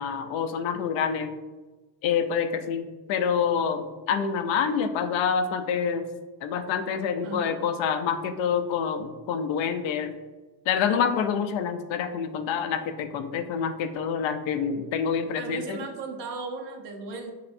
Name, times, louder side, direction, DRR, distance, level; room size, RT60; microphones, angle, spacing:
voice 1, 0.0-1.3 2.0-6.1 6.4-10.1 10.7-15.8, left 7 dB, 75° left, 8 dB, 0.6 m, -27 dB
voice 2, 7.2-7.6 15.4-17.3, right 4 dB, 65° right, 4 dB, 0.9 m, -36 dB
5.5 x 3.1 x 2.6 m, 1.2 s
cardioid pair, 100°, 46 cm